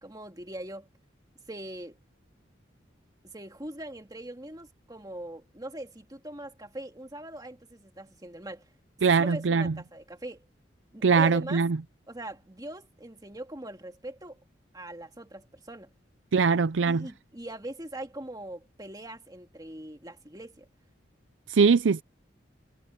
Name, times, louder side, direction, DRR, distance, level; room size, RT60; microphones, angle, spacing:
voice 1, 0.0-0.9 1.5-2.0 3.2-8.7 9.1-10.4 10.9-11.6 12.1-14.4 14.7-15.9 16.6-20.7, right 1 dB, 20° right, 2.2 m, -41 dB
voice 2, 9.0-9.7 11.0-11.8 16.3-17.1 21.5-22.0, right 5 dB, 80° right, 0.5 m, -22 dB
head